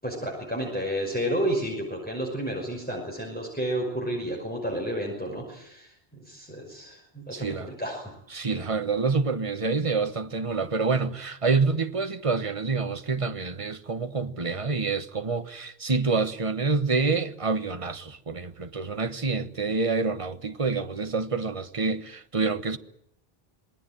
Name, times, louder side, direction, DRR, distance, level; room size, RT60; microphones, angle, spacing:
voice 1, 0.0-8.1, equal, 10° left, 5.8 m, -31 dB
voice 2, 7.3-7.7 8.3-22.8, right 4 dB, 35° right, 1.3 m, -27 dB
27.0 x 20.5 x 9.1 m
omnidirectional pair, 1.0 m